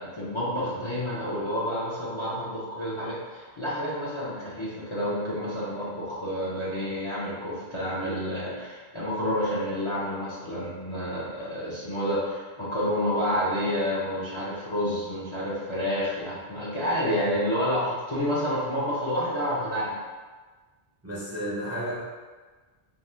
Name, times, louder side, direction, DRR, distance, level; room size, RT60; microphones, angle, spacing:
voice 1, 0.0-20.0, equal, 40° left, -9 dB, 0.5 m, -29 dB
voice 2, 21.0-22.0, equal, 20° right, -9 dB, 0.4 m, -32 dB
2.7 x 2.1 x 3.2 m, 1.3 s
omnidirectional pair, 1.1 m